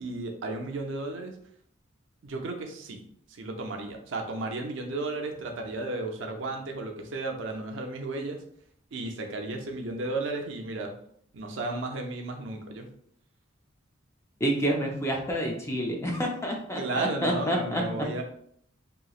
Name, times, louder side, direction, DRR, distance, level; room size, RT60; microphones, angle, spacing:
voice 1, 0.0-1.4 2.2-3.0 3.3-8.4 8.9-10.9 11.3-12.9 16.8-18.2, right 2 dB, 65° right, 3 dB, 0.5 m, -34 dB
voice 2, 14.4-18.1, equal, 15° left, -1 dB, 0.4 m, -28 dB
3.0 x 2.8 x 2.3 m, 0.67 s
head